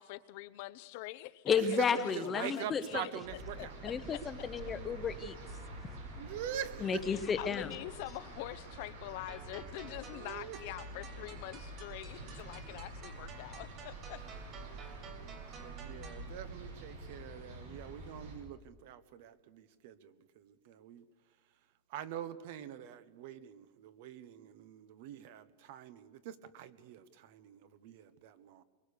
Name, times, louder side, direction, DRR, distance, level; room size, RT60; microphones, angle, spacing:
voice 1, 0.0-3.1 3.5-4.2 6.8-14.2, left 17 dB, 55° left, 14 dB, 0.8 m, -45 dB
voice 2, 1.4-3.2 3.8-6.0 6.8-7.7, left 6 dB, 20° left, 12 dB, 0.9 m, -33 dB
voice 3, 2.0-3.7 6.2-6.9 7.2-7.3 10.1-10.6 12.7-12.8 15.6-21.0 21.9-28.6, right 10 dB, 60° right, 14 dB, 1.2 m, -45 dB
sound 1, 3.2-18.3, right 2 dB, 85° right, 7.0 m, -47 dB
sound 2, 9.3-16.3, right 5 dB, 35° right, 3.2 m, -53 dB
23.0 x 23.0 x 6.8 m, 1.4 s
supercardioid pair, 160°, 0 cm